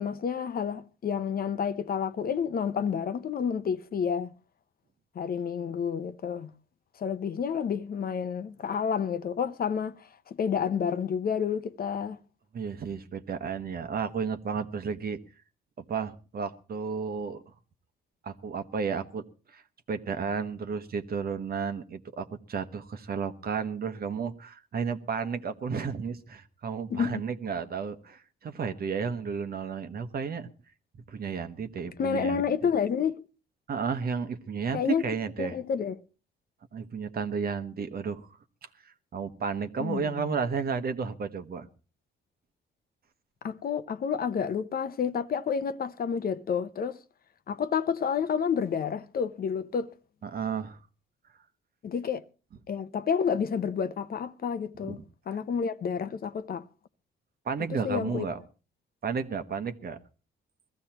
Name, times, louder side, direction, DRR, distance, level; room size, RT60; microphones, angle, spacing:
voice 1, 0.0-4.3 5.1-6.5 7.0-12.2 26.9-27.2 32.0-33.2 34.7-35.0 35.4-36.0 39.8-40.3 43.4-47.0 47.5-49.9 51.8-52.2 52.7-55.0 55.3-56.6 57.7-58.3, left 7 dB, 50° left, 0.8 m, -29 dB
voice 2, 12.5-15.2 15.9-17.5 18.2-19.6 19.9-30.5 31.1-32.5 33.7-35.6 36.7-38.3 38.8-41.7 50.2-50.8 54.8-55.0 55.3-55.4 57.4-58.4 59.0-60.0, right 6 dB, 50° right, 1.2 m, -33 dB
21.0 x 14.5 x 2.9 m
cardioid pair, 90°, 20 cm